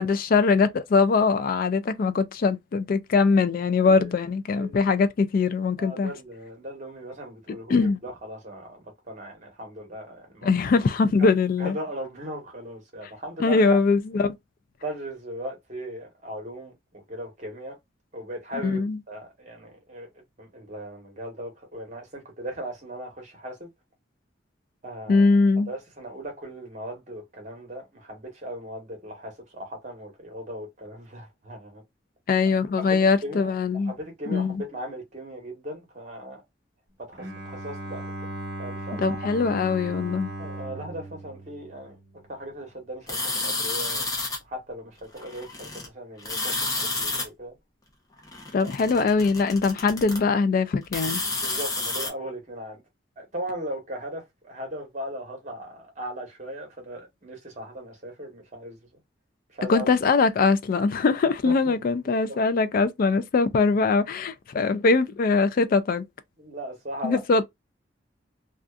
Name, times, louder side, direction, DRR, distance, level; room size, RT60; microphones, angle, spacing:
voice 1, 0.0-6.1 7.7-8.0 10.4-11.8 13.4-14.3 18.6-19.0 25.1-25.7 32.3-33.9 34.3-34.6 39.0-40.3 48.5-51.2 59.7-66.0 67.0-67.4, left 4 dB, 50° left, 0.3 m, -22 dB
voice 2, 5.8-10.5 11.2-11.3 11.6-13.8 14.8-17.8 18.1-23.7 24.8-25.3 25.7-31.8 32.8-33.5 33.8-36.4 37.0-38.3 38.6-39.2 40.4-42.0 42.3-44.1 44.5-47.6 51.4-52.8 53.2-58.8 59.5-59.9 61.4-61.8 62.2-62.4 66.4-67.2, right 1 dB, 40° right, 1.1 m, -38 dB
Bowed string instrument, 37.2-42.4, right 1 dB, 60° right, 0.8 m, -37 dB
sound 1, 43.1-44.4 45.2-45.9 46.2-47.3 48.2-50.2 50.8-52.1, left 2 dB, 20° left, 0.7 m, -30 dB
2.6 x 2.3 x 2.3 m
head